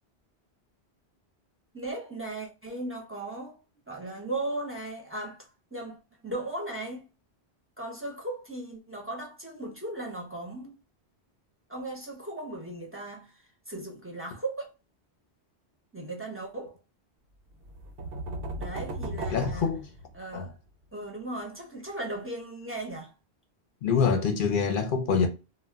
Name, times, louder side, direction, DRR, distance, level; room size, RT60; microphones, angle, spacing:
voice 1, 1.7-3.6 3.9-7.1 7.8-10.8 11.7-14.7 15.9-16.8 18.6-19.7 20.1-20.6 20.9-23.1, right 2 dB, 15° right, 0.5 m, -37 dB
sound 1, 17.6-20.5, right 1 dB, 85° right, 0.9 m, -36 dB
voice 2, 19.3-19.9 20.3-20.5 23.8-25.3, left 6 dB, 60° left, 0.7 m, -25 dB
2.2 x 2.1 x 3.4 m
omnidirectional pair, 1.1 m